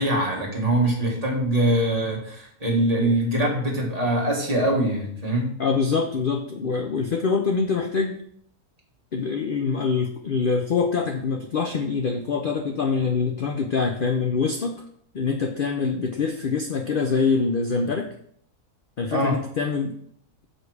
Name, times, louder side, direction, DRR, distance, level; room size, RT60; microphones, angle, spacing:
voice 1, 0.0-5.5 19.1-19.4, right 1 dB, 25° right, -2 dB, 1.6 m, -23 dB
voice 2, 5.6-8.2 9.1-14.7 15.1-18.1 19.0-19.9, left 5 dB, 65° left, 5 dB, 0.5 m, -24 dB
6.5 x 5.1 x 4.7 m, 0.65 s
omnidirectional pair, 1.7 m